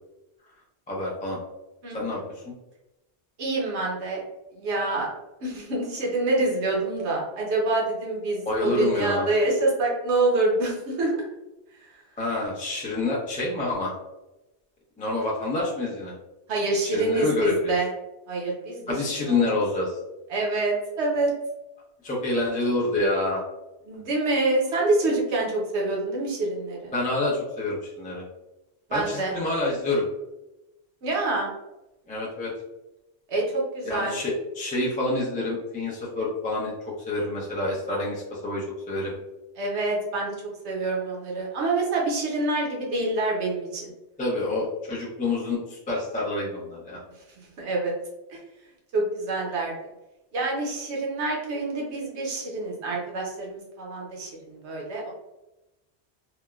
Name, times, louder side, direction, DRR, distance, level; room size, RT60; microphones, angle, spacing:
voice 1, 0.9-1.4 1.9-2.4 8.5-9.3 12.2-14.0 15.0-16.1 16.8-17.7 18.9-20.0 22.0-23.4 26.9-28.2 28.9-30.1 32.1-32.5 33.8-39.2 44.2-47.0, left 2 dB, 10° left, -4 dB, 0.4 m, -27 dB
voice 2, 3.4-4.2 4.6-5.1 5.4-11.1 16.5-17.9 18.3-18.8 19.3-19.4 20.3-21.3 23.9-26.9 28.9-29.3 31.0-31.5 33.3-34.2 39.6-40.3 40.6-43.9 47.6-47.9 48.3-48.4 48.9-49.7 50.3-55.1, right 2 dB, 85° right, -2 dB, 1.1 m, -26 dB
3.4 x 2.0 x 2.3 m, 0.96 s
omnidirectional pair, 1.1 m